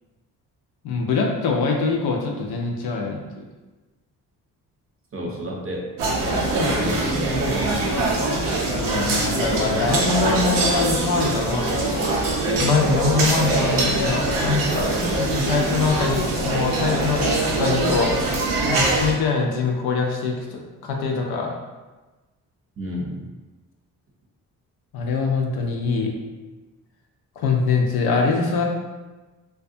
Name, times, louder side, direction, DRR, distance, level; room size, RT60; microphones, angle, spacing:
voice 1, 0.8-3.4 8.8-12.2 12.6-14.9 15.1-18.1 18.7-21.5 24.9-26.1 27.4-28.6, left 4 dB, 70° left, 1 dB, 0.6 m, -23 dB
voice 2, 5.1-5.8 6.3-8.0 22.8-23.2, right 1 dB, 35° right, -1 dB, 0.7 m, -28 dB
sound 1, 6.0-19.1, right 2 dB, 85° right, 0.6 m, -23 dB
2.5 x 2.2 x 2.5 m, 1.2 s
supercardioid pair, 55°, 40 cm